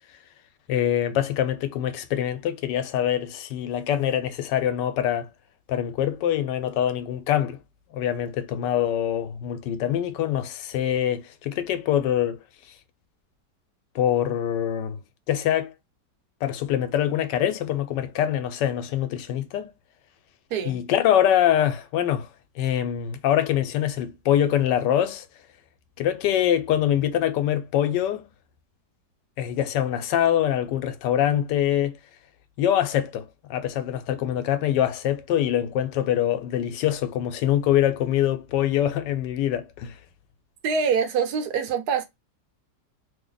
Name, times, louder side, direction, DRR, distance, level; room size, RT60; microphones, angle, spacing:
voice 1, 0.7-5.3 5.7-7.6 7.9-12.4 13.9-15.0 15.3-15.7 16.4-19.7 20.6-22.3 22.6-25.2 26.0-28.2 29.4-32.0 32.6-39.9, left 11 dB, 80° left, 1.2 m, -24 dB
voice 2, 20.5-20.8 40.6-42.0, right 6 dB, 70° right, 1.2 m, -25 dB
3.0 x 2.1 x 3.8 m
omnidirectional pair, 1.9 m